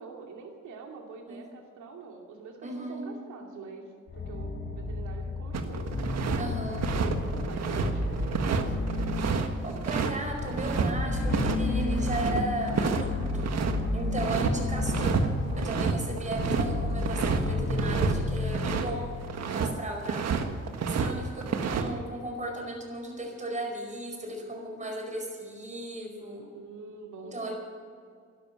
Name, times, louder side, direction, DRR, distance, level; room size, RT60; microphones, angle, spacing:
voice 1, 0.0-6.6 7.4-8.6 26.2-27.5, right 4 dB, 75° right, 1 dB, 2.6 m, -45 dB
voice 2, 2.6-3.1 6.4-6.9 9.6-13.5 13.9-15.2 15.6-19.2 19.5-20.5 20.9-26.4 27.2-27.5, right 1 dB, 25° right, 2 dB, 4.8 m, -36 dB
sound 1, 4.1-19.8, left 2 dB, 40° left, 5.3 m, -32 dB
sound 2, 5.5-6.4 6.7-10.9 11.3-11.6 11.8-13.8 14.2-14.5 14.8-15.3 15.5-18.9 19.2-19.7 20.0-21.1 21.4-21.9, right 6 dB, 60° right, 1.6 m, -29 dB
12.5 x 12.0 x 9.8 m, 2.1 s
cardioid pair, 90°, 30 cm